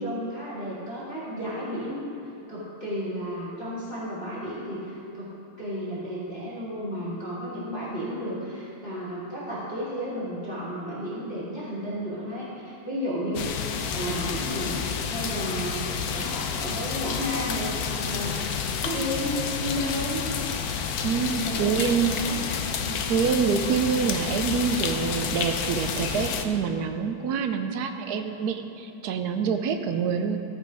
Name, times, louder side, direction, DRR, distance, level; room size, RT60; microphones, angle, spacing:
voice 1, 0.0-2.2 2.5-5.3 5.6-13.5 13.9-14.7 15.1-18.4 18.8-20.2 21.1-22.4 22.8-23.0, equal, 30° left, -10 dB, 2.4 m, -33 dB
sound 1, 13.3-26.4, left 7 dB, 65° left, 1.0 m, -30 dB
voice 2, 21.0-22.1 23.1-30.4, right 6 dB, 70° right, 7 dB, 1.0 m, -26 dB
14.5 x 5.9 x 4.9 m, 2.8 s
omnidirectional pair, 2.1 m